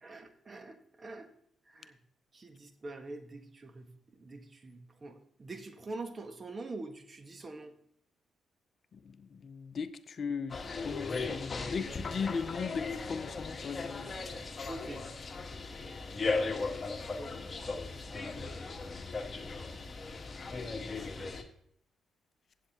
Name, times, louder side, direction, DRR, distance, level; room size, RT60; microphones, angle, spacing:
voice 1, 0.0-1.3 1.7-2.0 2.3-7.7 14.7-15.1 17.2-17.3 18.1-18.8 19.0-19.1, right 2 dB, 40° right, 1.5 m, -45 dB
voice 2, 9.0-10.6 10.8-14.1, left 5 dB, 55° left, 0.7 m, -37 dB
sound 1, 10.5-21.4, left 3 dB, 40° left, 1.5 m, -37 dB
15.5 x 8.4 x 2.9 m
hypercardioid pair, 50°, 0 cm